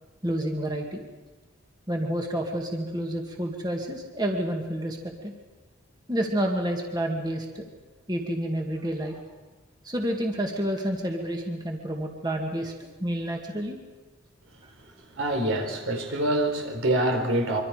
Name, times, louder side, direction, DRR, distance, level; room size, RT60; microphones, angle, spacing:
voice 1, 0.2-1.0 1.9-5.3 6.1-7.6 8.1-9.2 9.8-12.7 13.0-13.8, right 1 dB, 20° right, 1 dB, 2.1 m, -29 dB
voice 2, 15.1-17.6, right 1 dB, 70° right, 3 dB, 4.3 m, -25 dB
25.5 x 25.0 x 5.1 m, 1.2 s
head